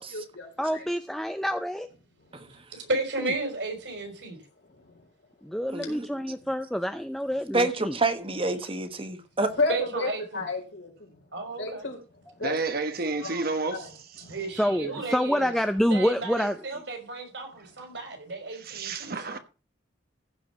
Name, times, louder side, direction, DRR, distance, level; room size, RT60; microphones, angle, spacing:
voice 1, 0.0-0.8 2.3-2.6 4.8-5.1 5.9-6.0 9.5-11.2 11.6-12.0 12.4-12.5 13.2-13.9 14.2-14.4, left 3 dB, 75° left, 4.2 m, -33 dB
voice 2, 0.6-1.9 5.4-8.0 14.6-16.5, equal, ahead, 0.5 m, -27 dB
voice 3, 2.7-4.4 9.7-10.4 11.3-11.9 13.8-13.9 14.3-15.5 15.9-19.1, right 3 dB, 70° right, 4.2 m, -33 dB
voice 4, 5.7-6.1 7.5-9.5, right 2 dB, 30° right, 1.3 m, -28 dB
voice 5, 12.4-13.9 14.2-14.3 18.6-19.4, right 3 dB, 55° right, 1.3 m, -30 dB
15.0 x 5.1 x 5.8 m
head